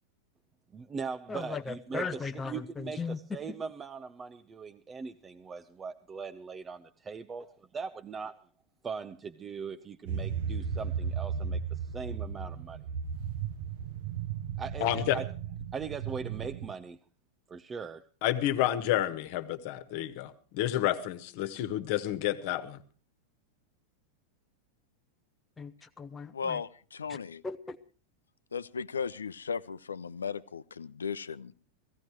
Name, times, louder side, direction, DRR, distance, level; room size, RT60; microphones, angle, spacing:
voice 1, 0.7-8.5 8.8-12.8 14.6-15.3 15.7-17.0 17.5-18.1, right 5 dB, 20° right, 0.7 m, -40 dB
voice 2, 1.3-3.2 3.5-3.6 25.6-26.6 27.1-27.2 27.4-27.8, left 4 dB, 15° left, 0.8 m, -37 dB
sound 1, 10.1-16.7, right 7 dB, 55° right, 1.1 m, -35 dB
voice 3, 14.8-15.2 18.2-22.8, left 13 dB, 45° left, 1.4 m, -30 dB
voice 4, 26.3-27.4 28.5-31.5, left 6 dB, 70° left, 0.7 m, -36 dB
16.5 x 16.0 x 4.6 m
figure-of-eight pair, 90°, 0 cm